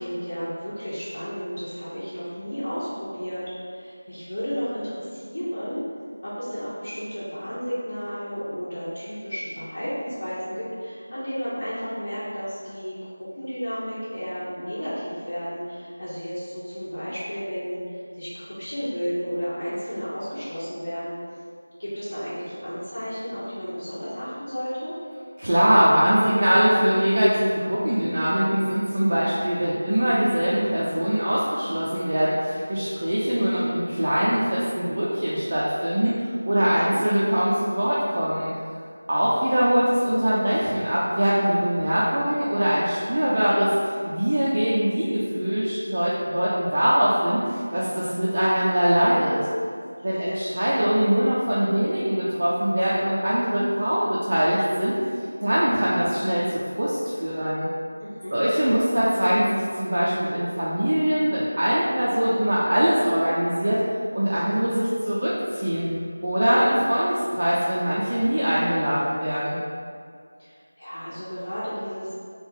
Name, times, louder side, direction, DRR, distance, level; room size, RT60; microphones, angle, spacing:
voice 1, 0.0-5.8 6.2-21.2 21.8-24.9 36.6-37.0 50.1-50.5 58.0-58.4 70.4-72.1, equal, 50° left, -12 dB, 0.9 m, -33 dB
voice 2, 25.4-38.5 39.1-49.4 50.0-54.9 55.4-57.7 58.3-63.8 64.1-65.9 66.2-69.6, equal, 40° right, -8 dB, 0.4 m, -22 dB
3.3 x 2.0 x 3.8 m, 2.2 s
figure-of-eight pair, 175°, 0 cm